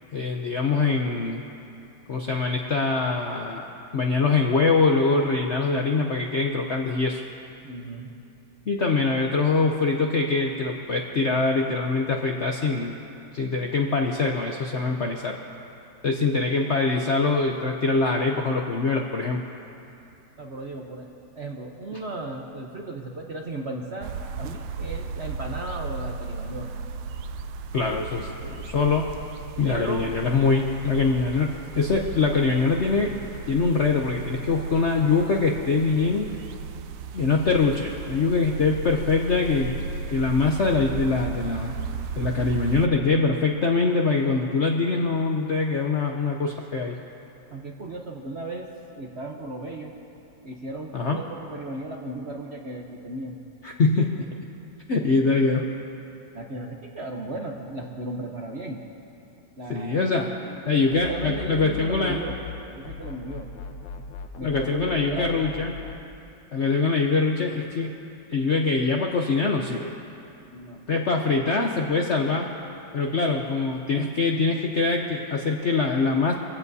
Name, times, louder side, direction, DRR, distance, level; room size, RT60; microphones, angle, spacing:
voice 1, 0.1-1.4 2.1-3.7 3.9-7.2 8.7-13.0 13.3-15.4 16.0-19.4 21.9-22.0 27.7-29.1 29.6-33.1 33.5-36.3 37.1-39.7 40.1-41.8 42.2-47.0 50.9-51.2 53.6-54.3 54.9-55.6 59.7-60.3 60.7-62.2 64.4-65.7 66.5-67.9 68.3-70.0 70.9-72.5 72.9-76.3, left 4 dB, 60° left, 1 dB, 0.7 m, -23 dB
voice 2, 7.6-8.1 20.4-21.1 21.3-26.7 29.6-30.1 47.5-49.9 50.4-53.4 56.3-58.8 59.6-60.1 60.5-62.4 62.7-63.5 64.4-65.4 70.5-70.8, right 2 dB, 45° right, 0 dB, 0.9 m, -36 dB
sound 1, 24.0-42.9, right 5 dB, 85° right, 1.4 m, -35 dB
sound 2, 60.9-62.6 62.8-66.0, left 6 dB, 90° left, 1.6 m, -39 dB
23.5 x 16.0 x 2.7 m, 2.7 s
omnidirectional pair, 2.0 m